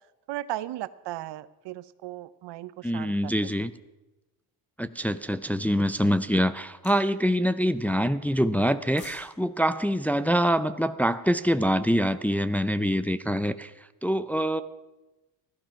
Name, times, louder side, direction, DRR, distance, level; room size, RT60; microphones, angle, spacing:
voice 1, 0.3-3.5, right 15 dB, 75° right, 16 dB, 0.8 m, -36 dB
voice 2, 2.8-3.7 4.8-14.6, equal, 5° left, 11 dB, 0.4 m, -25 dB
sound 1, 6.8-7.1 8.7-9.3 9.6-9.8, left 4 dB, 55° left, 4.0 m, -46 dB
17.0 x 12.0 x 5.8 m, 1.1 s
cardioid pair, 110°, 42 cm